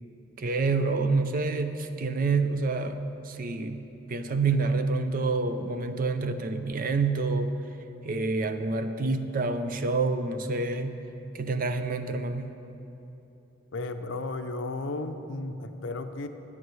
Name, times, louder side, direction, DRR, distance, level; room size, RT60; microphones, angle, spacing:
voice 1, 0.4-7.6 8.0-11.0 11.3-12.6, right 3 dB, 40° right, 8 dB, 0.5 m, -28 dB
voice 2, 13.7-16.3, left 2 dB, 60° left, 8 dB, 0.5 m, -34 dB
16.0 x 9.7 x 3.2 m, 3.0 s
head